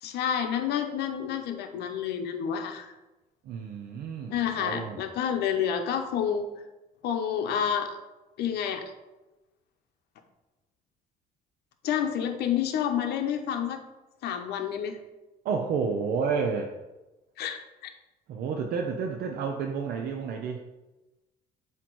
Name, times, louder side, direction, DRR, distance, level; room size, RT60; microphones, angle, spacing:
voice 1, 0.0-2.9 4.3-6.5 7.0-8.0 8.4-8.9 11.8-13.8 14.2-15.0 17.4-17.9, left 8 dB, 75° left, 6 dB, 0.8 m, -29 dB
voice 2, 3.4-5.0 15.4-16.8 18.3-20.6, right 5 dB, 65° right, 3 dB, 0.6 m, -30 dB
7.6 x 2.9 x 4.6 m, 1.0 s
cardioid pair, 110°, 17 cm